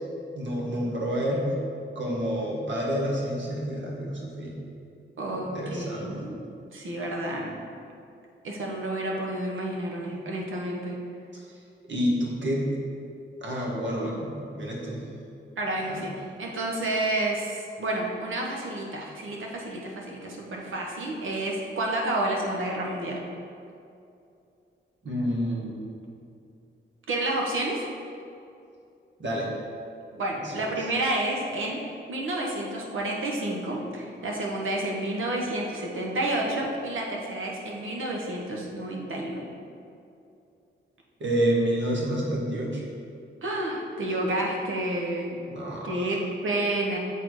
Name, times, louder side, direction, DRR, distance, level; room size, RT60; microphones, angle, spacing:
voice 1, 0.3-1.6 1.9-4.6 5.3-6.3 11.9-12.7 13.4-15.0 15.9-16.0 25.0-25.7 29.2-29.5 30.4-30.7 41.2-42.8 45.5-46.1, equal, 65° right, -3 dB, 1.6 m, -28 dB
voice 2, 5.2-6.4 6.7-7.6 8.4-11.0 15.6-23.2 27.1-27.8 30.1-31.8 32.1-39.4 43.4-45.4 45.8-47.0, right 1 dB, 80° right, -1 dB, 1.2 m, -30 dB
7.5 x 4.3 x 4.8 m, 2.6 s
cardioid pair, 80°, 20 cm